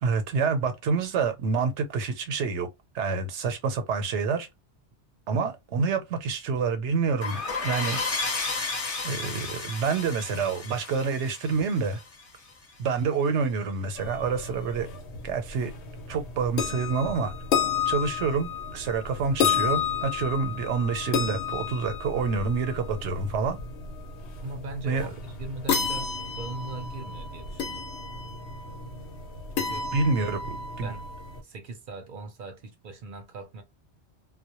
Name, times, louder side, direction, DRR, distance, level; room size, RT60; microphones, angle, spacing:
voice 1, 0.0-2.7 2.9-4.5 5.3-8.0 9.0-12.0 12.8-14.9 15.2-15.7 16.1-17.3 17.9-23.6 24.8-25.1 29.9-30.4 30.8-30.9, right 5 dB, 85° right, 0.9 m, -27 dB
sound 1, 7.2-12.5, left 3 dB, 35° left, 0.7 m, -33 dB
sound 2, 13.9-31.4, left 6 dB, 80° left, 0.9 m, -32 dB
voice 2, 24.4-27.9 29.6-29.9 30.2-30.3 30.8-31.0 31.4-33.6, right 2 dB, 60° right, 0.6 m, -40 dB
2.2 x 2.0 x 2.8 m
omnidirectional pair, 1.1 m